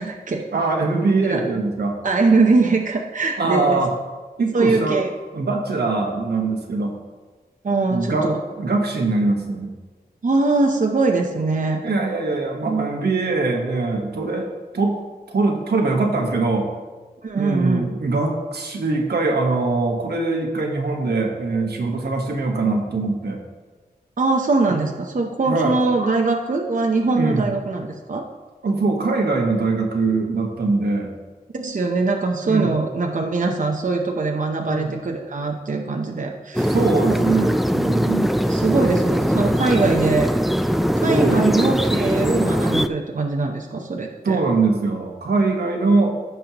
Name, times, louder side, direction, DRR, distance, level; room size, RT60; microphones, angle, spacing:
voice 1, 0.0-0.4 1.2-1.5 2.0-3.8 4.5-5.1 7.6-8.4 10.2-11.8 12.6-12.9 17.2-17.9 22.0-22.1 24.2-28.2 31.5-36.8 37.1-37.2 38.5-40.3 41.0-44.4, right 3 dB, 50° right, 1 dB, 0.8 m, -22 dB
voice 2, 0.5-2.0 3.4-3.9 4.4-5.0 5.3-6.9 7.9-9.7 11.8-14.5 14.7-15.0 15.3-16.7 17.3-23.4 24.7-24.8 25.5-25.8 27.1-27.4 28.6-31.1 32.4-32.7 34.6-34.9 36.7-38.4 41.1-41.8 44.2-46.1, right 3 dB, 80° right, 1 dB, 1.3 m, -22 dB
sound 1, 36.6-42.9, equal, ahead, 0.4 m, -20 dB
15.5 x 5.5 x 3.0 m, 1.3 s
wide cardioid pair, 65°, 16 cm